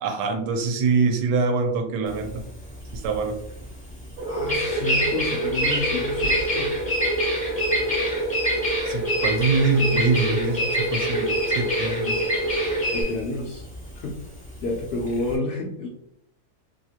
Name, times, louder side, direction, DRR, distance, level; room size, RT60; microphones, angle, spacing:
voice 1, 0.0-2.4 2.9-3.3 8.8-12.2, right 4 dB, 85° right, 4 dB, 1.1 m, -24 dB
Bird vocalization bird call bird song, 2.1-15.4, left 1 dB, 10° left, 0.4 m, -27 dB
sound 1, 4.2-13.0, right 1 dB, 50° right, 0.6 m, -27 dB
voice 2, 4.3-6.7 12.8-13.7 13.9-14.2 14.6-15.9, left 2 dB, 80° left, -1 dB, 0.5 m, -30 dB
2.9 x 2.4 x 2.8 m, 0.72 s
omnidirectional pair, 1.7 m